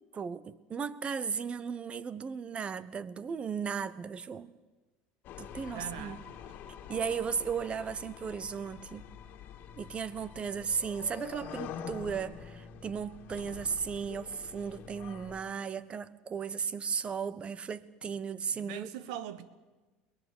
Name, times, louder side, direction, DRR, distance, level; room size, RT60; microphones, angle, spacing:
voice 1, 0.1-4.5 5.4-6.2 6.9-9.1 9.8-18.9, right 6 dB, 30° right, 1.0 m, -35 dB
sound 1, 5.2-15.4, left 8 dB, 55° left, 2.0 m, -46 dB
voice 2, 5.7-6.2 18.5-19.5, right 11 dB, 80° right, 1.4 m, -41 dB
22.0 x 19.0 x 8.7 m
supercardioid pair, 105°, 4 cm